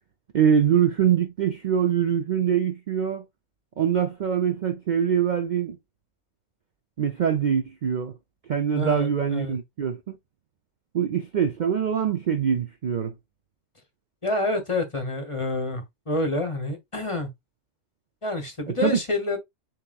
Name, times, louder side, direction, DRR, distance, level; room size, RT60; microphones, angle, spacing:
voice 1, 0.3-3.2 3.8-5.8 7.0-8.1 8.5-10.2 10.9-13.1 18.7-19.0, right 8 dB, 55° right, 0.5 m, -23 dB
voice 2, 8.7-9.6 14.2-17.3 18.2-19.4, left 2 dB, 30° left, 0.8 m, -28 dB
7.5 x 2.9 x 2.4 m
omnidirectional pair, 1.3 m